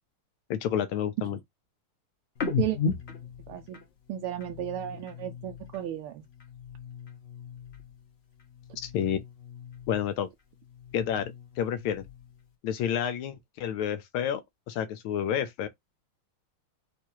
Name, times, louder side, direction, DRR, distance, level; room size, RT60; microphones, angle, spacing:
voice 1, 0.5-1.4 8.8-9.2 9.9-10.3 10.9-11.2 11.6-12.1 12.6-14.4 14.7-15.7, left 9 dB, 80° left, 1.4 m, -29 dB
sound 1, 2.4-5.9 6.2-8.1 8.4-10.2 10.6-12.4, left 5 dB, 50° left, 0.8 m, -37 dB
voice 2, 3.5-3.8 4.1-6.2, right 12 dB, 80° right, 1.5 m, -33 dB
4.6 x 2.5 x 4.5 m
omnidirectional pair, 2.4 m